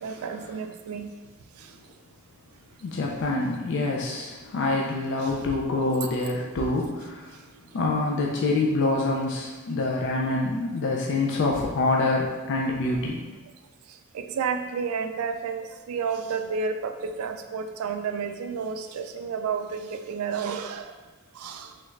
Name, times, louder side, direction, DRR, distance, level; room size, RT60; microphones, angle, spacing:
voice 1, 0.0-1.1 1.6-1.8 5.2-5.4 13.9-20.9 21.3-21.7, right 6 dB, 90° right, 7 dB, 0.3 m, -31 dB
voice 2, 2.8-7.3 7.7-13.2, left 2 dB, 60° left, -2 dB, 0.4 m, -26 dB
3.2 x 2.4 x 3.0 m, 1.2 s
head